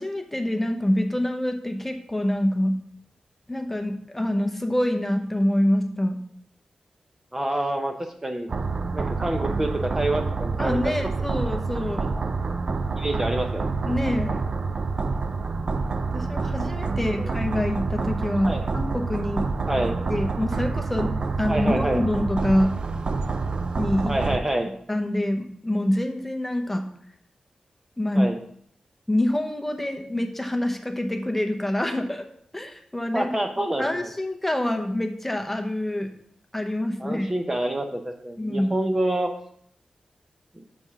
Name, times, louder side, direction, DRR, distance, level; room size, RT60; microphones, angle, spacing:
voice 1, 0.0-2.8 3.5-6.2 10.6-12.1 13.8-14.4 16.1-19.5 20.1-21.1 21.4-22.8 23.8-24.2 24.9-26.8 28.0-28.3 29.1-32.3 32.5-33.3 33.8-36.1 36.5-37.3 38.4-38.7, left 1 dB, 10° left, 5 dB, 0.9 m, -26 dB
voice 2, 7.3-7.9 8.2-8.5 8.9-10.9 13.0-13.7 17.2-17.3 18.4-18.7 19.7-20.0 21.5-22.0 24.1-24.7 28.1-28.4 33.1-34.1 37.0-39.3 40.6-40.7, right 1 dB, 20° right, 4 dB, 0.8 m, -27 dB
sound 1, 8.5-24.4, right 4 dB, 45° right, 0.5 m, -27 dB
6.8 x 5.3 x 5.9 m, 0.65 s
wide cardioid pair, 125°, 2 cm